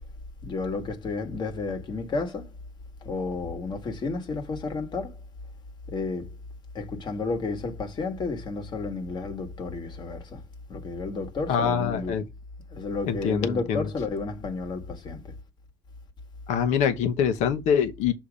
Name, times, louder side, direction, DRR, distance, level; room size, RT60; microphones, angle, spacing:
voice 1, 0.4-2.5 3.0-5.2 5.9-6.3 6.7-10.4 10.7-12.2 12.7-15.3, left 3 dB, 40° left, 1.3 m, -31 dB
voice 2, 11.5-12.2 13.1-13.9 16.5-18.1, left 7 dB, 90° left, 0.9 m, -24 dB
7.0 x 2.8 x 5.0 m
cardioid pair, 130°, 12 cm